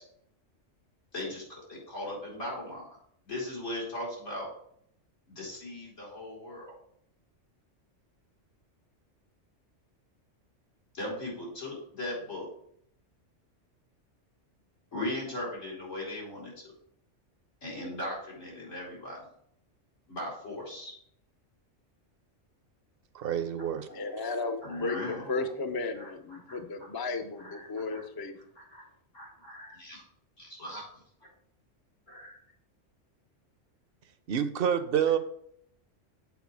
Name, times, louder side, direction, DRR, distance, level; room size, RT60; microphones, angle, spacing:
voice 1, 1.1-2.9 3.3-4.5 5.3-6.7 10.9-12.5 14.9-16.7 17.6-19.2 20.1-20.9 23.9-25.4 26.0-26.1 26.5-26.6 27.4-28.0 28.6-28.9 29.1-30.0 30.4-31.0 32.1-32.4, left 1 dB, 90° left, -5 dB, 4.1 m, -38 dB
voice 2, 23.1-23.9 34.3-35.2, right 9 dB, 55° right, 11 dB, 0.8 m, -27 dB
voice 3, 23.9-28.4, left 3 dB, 30° left, 7 dB, 0.4 m, -34 dB
8.3 x 4.5 x 4.6 m, 0.67 s
omnidirectional pair, 1.3 m